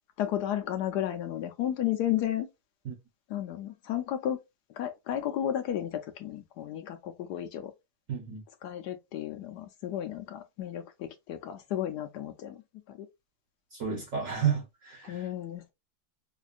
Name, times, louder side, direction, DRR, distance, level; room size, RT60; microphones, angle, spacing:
voice 1, 0.2-2.5 3.3-4.4 4.7-7.7 8.6-12.6 12.9-13.1 15.1-15.7, left 11 dB, 75° left, 1.1 m, -33 dB
voice 2, 8.1-8.4 13.7-15.3, right 7 dB, 55° right, 1.3 m, -31 dB
5.2 x 2.3 x 2.4 m
omnidirectional pair, 1.8 m